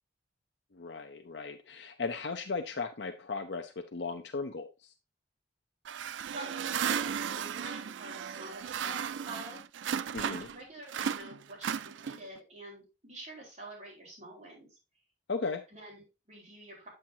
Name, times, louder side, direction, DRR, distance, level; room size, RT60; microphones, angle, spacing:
voice 1, 0.7-4.7 10.1-10.5 15.3-15.6, left 4 dB, 70° left, 0.7 m, -36 dB
sound 1, 5.8-10.6 10.9-12.4, right 8 dB, 90° right, 0.4 m, -35 dB
voice 2, 6.3-8.9 9.2-9.6 10.2-14.8 15.7-16.9, right 1 dB, 35° right, 4.7 m, -47 dB
8.6 x 7.7 x 2.8 m
head